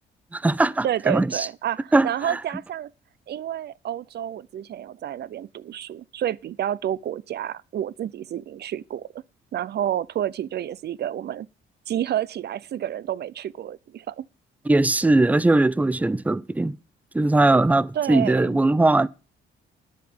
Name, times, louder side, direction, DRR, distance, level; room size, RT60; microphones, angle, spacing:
voice 1, 0.3-1.5 1.9-2.4 14.7-16.7 17.1-19.1, right 2 dB, 5° right, 0.5 m, -20 dB
voice 2, 0.8-2.9 3.3-9.1 9.5-11.5 11.9-14.3 17.9-18.6, right 11 dB, 55° right, 0.6 m, -29 dB
10.5 x 5.9 x 7.1 m
cardioid pair, 90°, 20 cm